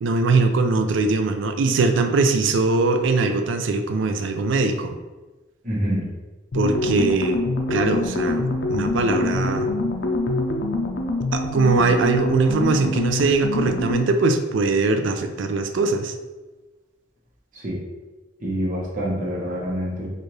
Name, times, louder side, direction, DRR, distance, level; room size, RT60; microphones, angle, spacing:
voice 1, 0.0-5.0 6.5-7.4 7.7-9.7 11.3-16.1, right 3 dB, 75° right, 6 dB, 0.4 m, -21 dB
voice 2, 5.6-6.1 17.5-17.8 18.4-20.1, equal, 40° right, -5 dB, 1.0 m, -26 dB
sound 1, 6.5-14.2, left 2 dB, 65° left, 0.5 m, -25 dB
4.4 x 2.5 x 3.1 m, 1.2 s
head